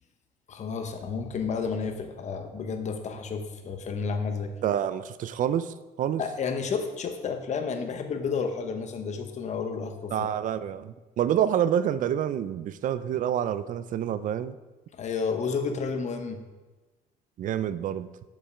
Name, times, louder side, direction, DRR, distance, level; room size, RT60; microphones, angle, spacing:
voice 1, 0.5-4.6 6.2-10.1 14.9-16.4, left 5 dB, 45° left, 6 dB, 0.9 m, -31 dB
voice 2, 4.6-6.2 10.1-14.6 17.4-18.1, right 9 dB, 50° right, 15 dB, 0.4 m, -27 dB
7.2 x 5.4 x 4.9 m, 1.2 s
cardioid pair, 110°, 17 cm